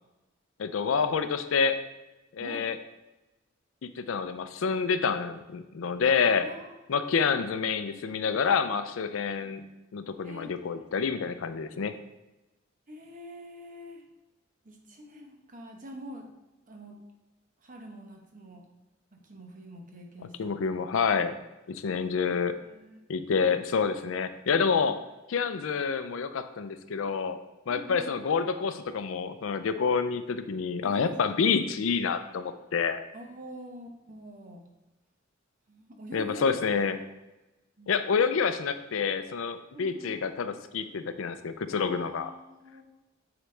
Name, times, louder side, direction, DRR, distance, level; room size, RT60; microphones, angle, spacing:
voice 1, 0.6-1.8 2.3-2.8 3.8-6.5 6.9-9.6 9.9-11.9 20.2-21.4 21.7-22.5 23.1-25.0 25.3-27.4 27.7-33.0 36.1-37.0 37.9-42.3, left 5 dB, 80° left, 10 dB, 0.4 m, -28 dB
voice 2, 6.4-7.2 8.2-8.3 10.2-10.8 12.9-14.0 14.6-16.3 16.7-17.0 17.6-18.7 19.1-20.5 20.8-20.9 22.1-22.4 22.7-23.5 27.7-28.1 30.8-31.6 33.1-34.6 35.7-36.7 37.8-38.0 39.7-40.2 41.7-42.8, equal, 40° right, 2 dB, 1.0 m, -45 dB
7.9 x 4.0 x 3.3 m, 1.0 s
head